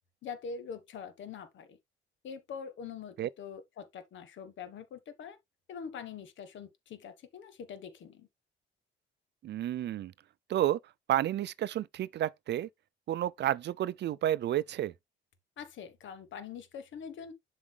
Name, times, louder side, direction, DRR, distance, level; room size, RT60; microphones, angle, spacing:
voice 1, 0.2-1.8 2.2-5.4 5.7-8.3 15.6-17.3, left 6 dB, 70° left, 1.4 m, -44 dB
voice 2, 9.4-10.1 10.5-10.8 11.1-12.7 13.1-14.9, right 12 dB, 60° right, 0.5 m, -31 dB
7.3 x 4.9 x 3.3 m
cardioid pair, 90°, 20 cm